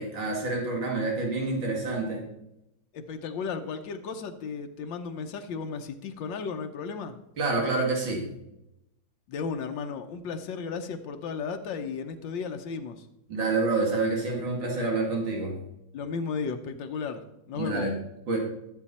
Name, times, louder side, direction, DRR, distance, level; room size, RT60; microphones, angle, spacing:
voice 1, 0.0-2.2 7.4-8.3 13.3-15.5 17.5-17.9 18.3-18.4, right 3 dB, 90° right, -1 dB, 2.9 m, -27 dB
voice 2, 2.9-7.1 9.3-13.1 15.9-17.2 17.5-17.9, left 5 dB, 85° left, 6 dB, 1.6 m, -34 dB
13.0 x 8.1 x 4.2 m, 0.86 s
omnidirectional pair, 2.0 m